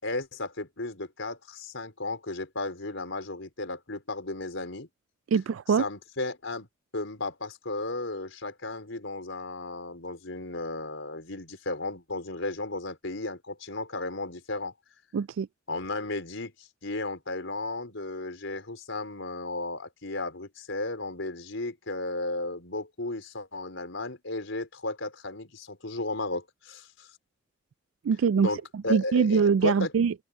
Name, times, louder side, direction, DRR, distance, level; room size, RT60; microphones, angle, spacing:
voice 1, 0.0-4.9 5.7-6.7 6.9-14.7 15.7-27.1 28.4-29.9, left 2 dB, 85° left, 4.5 m, -34 dB
voice 2, 5.3-5.8 15.1-15.5 28.0-30.1, right 6 dB, 85° right, 0.3 m, -24 dB
head